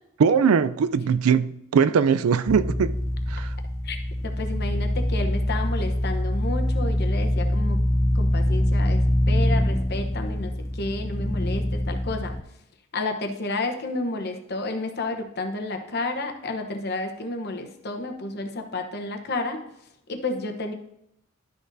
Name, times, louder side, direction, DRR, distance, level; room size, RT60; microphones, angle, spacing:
voice 1, 0.2-3.0 3.3-3.5, right 6 dB, 85° right, 0.4 m, -21 dB
sound 1, 2.5-12.4, left 1 dB, 10° left, 0.4 m, -24 dB
voice 2, 4.2-7.8 8.1-12.3 12.9-19.6 20.1-20.7, left 2 dB, 50° left, 0.9 m, -31 dB
11.5 x 6.3 x 2.7 m
head